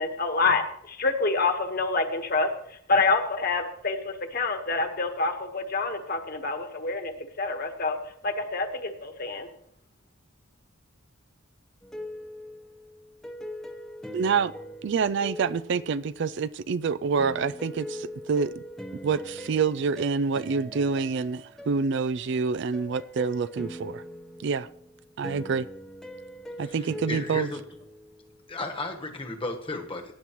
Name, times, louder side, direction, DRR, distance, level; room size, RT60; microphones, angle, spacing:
voice 1, 0.0-7.1 7.4-8.0 8.2-9.5, left 3 dB, 45° left, 1.4 m, -27 dB
sound 1, 11.8-16.5 17.2-28.5, equal, ahead, 0.9 m, -41 dB
voice 2, 14.1-14.5 14.8-18.5 19.0-24.0 24.4-24.7 25.2-25.7 26.6-27.5, right 5 dB, 55° right, 0.4 m, -27 dB
voice 3, 26.6-27.6 28.5-30.1, left 2 dB, 25° left, 1.3 m, -34 dB
17.5 x 10.0 x 3.1 m
head